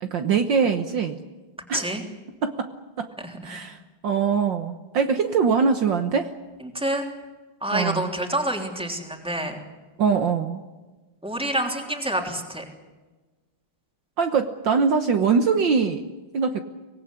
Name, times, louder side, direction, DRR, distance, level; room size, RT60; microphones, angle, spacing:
voice 1, 0.0-1.2 1.7-1.9 2.4-2.7 3.0-3.1 3.4-6.3 7.7-8.1 10.0-10.6 14.2-16.0 16.3-16.6, right 5 dB, 60° right, 7 dB, 1.7 m, -23 dB
voice 2, 7.6-9.6 11.2-12.6, right 1 dB, ahead, 3 dB, 3.2 m, -27 dB
25.0 x 18.5 x 9.8 m, 1.2 s
omnidirectional pair, 2.4 m